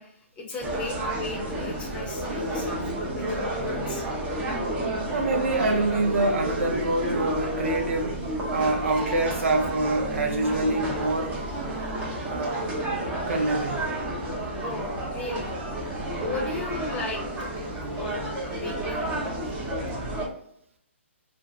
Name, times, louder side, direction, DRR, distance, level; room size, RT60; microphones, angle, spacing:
voice 1, 0.0-4.0 14.6-15.5 16.2-17.7 17.9-19.1, left 3 dB, 15° left, 0 dB, 0.7 m, -37 dB
sound 1, 0.6-20.3, right 1 dB, 15° right, 0.8 m, -31 dB
voice 2, 5.1-8.2 8.5-11.3 12.3-12.6 13.3-13.8, right 2 dB, 80° right, 3 dB, 0.8 m, -25 dB
2.8 x 2.5 x 3.4 m, 0.68 s
hypercardioid pair, 140°, 7 cm